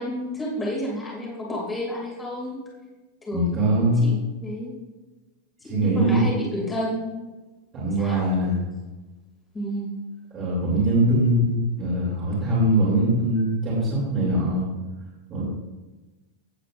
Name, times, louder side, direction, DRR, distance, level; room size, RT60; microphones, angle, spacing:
voice 1, 0.0-2.6 3.3-4.2 4.4-4.7 5.6-7.1 8.0-8.2 9.5-9.9, equal, 10° left, -4 dB, 2.6 m, -30 dB
voice 2, 3.3-4.2 5.6-6.2 7.7-8.6 10.3-14.7 15.3-15.4, right 1 dB, 25° right, -9 dB, 3.0 m, -22 dB
16.0 x 8.2 x 2.6 m, 1.2 s
supercardioid pair, 175°, 0 cm